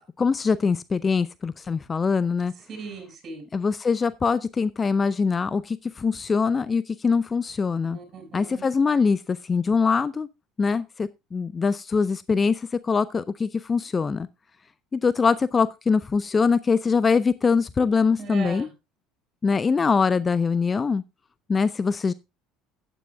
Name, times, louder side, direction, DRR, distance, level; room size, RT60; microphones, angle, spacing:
voice 1, 0.0-2.5 3.5-8.0 8.3-10.3 10.6-14.3 14.9-18.7 19.4-21.0 21.5-22.1, left 5 dB, 25° left, 0.5 m, -23 dB
voice 2, 2.7-3.4 7.9-8.6 18.2-18.7, right 4 dB, 40° right, 6.0 m, -38 dB
16.0 x 9.1 x 2.3 m
figure-of-eight pair, 65°, 0 cm